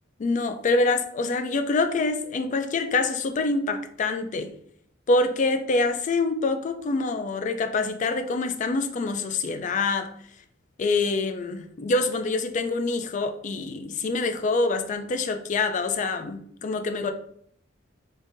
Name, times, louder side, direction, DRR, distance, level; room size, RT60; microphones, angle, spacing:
voice 1, 0.2-4.5 5.1-10.1 10.8-17.1, left 3 dB, 40° left, 0.3 m, -25 dB
3.7 x 2.5 x 2.5 m
head